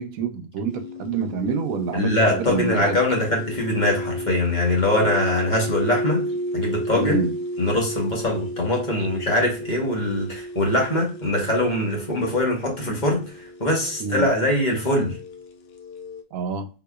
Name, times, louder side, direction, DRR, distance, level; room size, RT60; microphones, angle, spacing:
voice 1, 0.0-3.0 6.9-7.3 14.0-14.3 16.3-16.7, right 4 dB, 85° right, 1.1 m, -27 dB
sound 1, 0.7-16.2, equal, 60° left, 0.8 m, -33 dB
voice 2, 1.9-6.2 6.5-7.2 7.6-13.2 13.6-15.1, left 1 dB, 35° left, 1.1 m, -22 dB
3.8 x 2.9 x 2.2 m
omnidirectional pair, 1.4 m